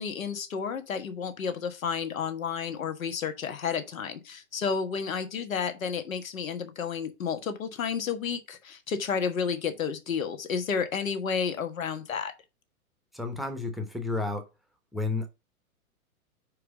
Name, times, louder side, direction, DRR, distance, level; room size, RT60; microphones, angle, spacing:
voice 1, 0.0-12.3, left 6 dB, 65° left, 1.5 m, -31 dB
voice 2, 13.1-14.4 14.9-15.3, left 3 dB, ahead, 1.0 m, -31 dB
5.0 x 4.8 x 4.9 m
figure-of-eight pair, 105°, 44 cm